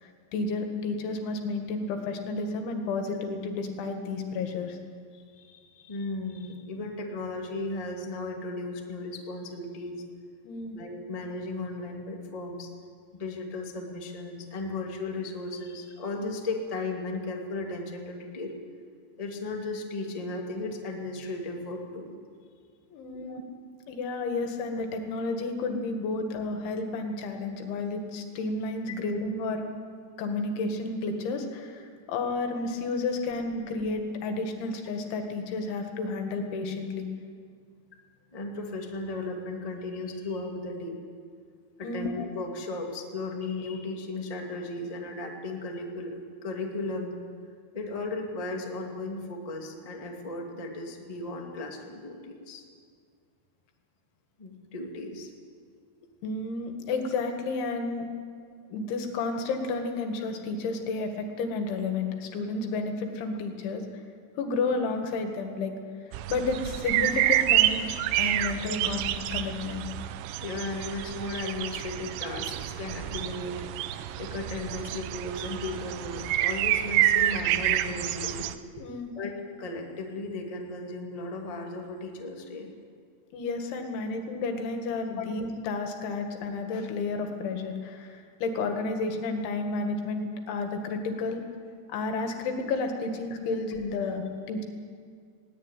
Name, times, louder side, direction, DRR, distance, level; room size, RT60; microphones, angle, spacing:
voice 1, 0.0-4.8 10.4-10.8 22.9-23.4 23.9-29.6 30.2-37.1 41.8-42.1 56.2-58.0 58.7-63.8 64.4-65.7 66.3-67.9 68.2-69.8 78.8-79.1 83.3-91.4 91.9-94.7, left 3 dB, 80° left, 5 dB, 4.4 m, -31 dB
voice 2, 5.1-10.0 10.7-12.7 13.1-18.5 19.2-22.2 23.1-23.4 38.3-41.0 41.8-47.1 47.7-52.6 54.4-55.3 70.4-73.6 74.2-78.5 79.1-82.7 85.1-85.2, left 2 dB, 15° left, 1 dB, 1.5 m, -36 dB
sound 1, 66.1-78.6, right 13 dB, 90° right, 3.2 m, -28 dB
21.0 x 18.5 x 9.2 m, 2.1 s
omnidirectional pair, 5.3 m